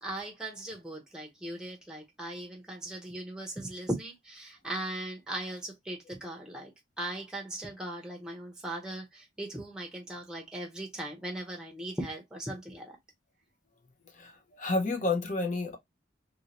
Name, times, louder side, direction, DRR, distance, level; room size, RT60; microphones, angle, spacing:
voice 1, 0.0-6.7 7.0-13.0, right 1 dB, 5° right, 0.8 m, -38 dB
voice 2, 14.2-15.8, left 3 dB, 40° left, 0.7 m, -30 dB
2.8 x 2.7 x 2.9 m
head